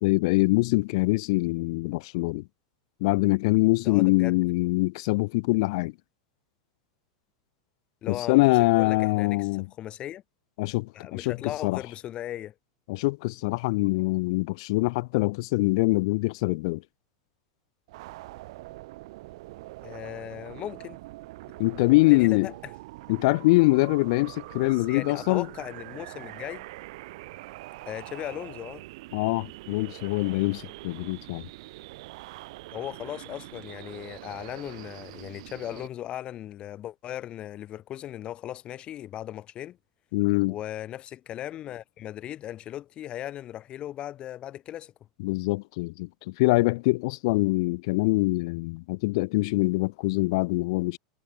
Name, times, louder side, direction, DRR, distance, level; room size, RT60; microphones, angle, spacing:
voice 1, 0.0-2.4 3.0-5.9 8.1-9.7 10.6-11.8 12.9-16.8 21.6-22.5 23.1-25.5 29.1-31.4 40.1-40.6 45.2-51.0, left 24 dB, 60° left, 1.2 m, -24 dB
voice 2, 3.8-4.4 8.0-9.5 9.8-10.2 10.9-12.5 19.8-21.0 22.1-22.7 24.5-26.6 27.9-28.8 32.7-39.8 40.5-44.9, left 12 dB, 35° left, 1.5 m, -37 dB
sound 1, 17.9-35.9, right 19 dB, 65° right, 2.2 m, -44 dB
supercardioid pair, 130°, 3 cm